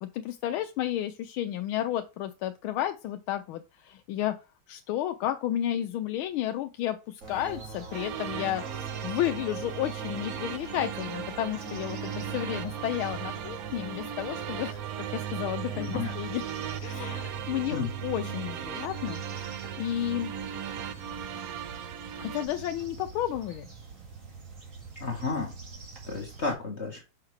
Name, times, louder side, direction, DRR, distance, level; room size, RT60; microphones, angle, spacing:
voice 1, 0.0-4.3 4.7-16.4 16.8-19.5 19.8-20.3 22.2-23.7, left 12 dB, 80° left, 7 dB, 1.4 m, -32 dB
sound 1, 7.2-26.5, right 7 dB, 40° right, 2.2 m, -40 dB
sound 2, 7.9-22.5, right 8 dB, 70° right, 0.9 m, -39 dB
voice 2, 15.7-16.1 17.7-17.9 25.0-25.5 26.0-27.0, left 4 dB, 35° left, 0 dB, 1.6 m, -32 dB
6.0 x 5.6 x 3.2 m, 0.29 s
omnidirectional pair, 2.3 m